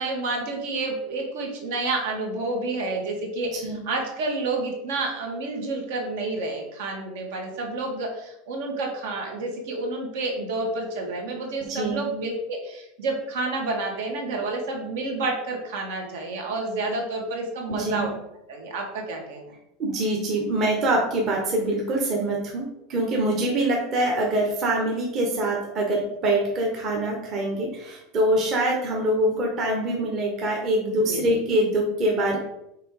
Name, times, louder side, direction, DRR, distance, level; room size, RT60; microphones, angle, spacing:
voice 1, 0.0-18.1 18.5-19.5 30.9-31.4, right 2 dB, 70° right, 1 dB, 1.8 m, -29 dB
voice 2, 19.8-22.6 22.9-32.4, right 1 dB, 30° right, -1 dB, 1.0 m, -24 dB
5.8 x 3.6 x 4.8 m, 0.84 s
supercardioid pair, 175°, 0 cm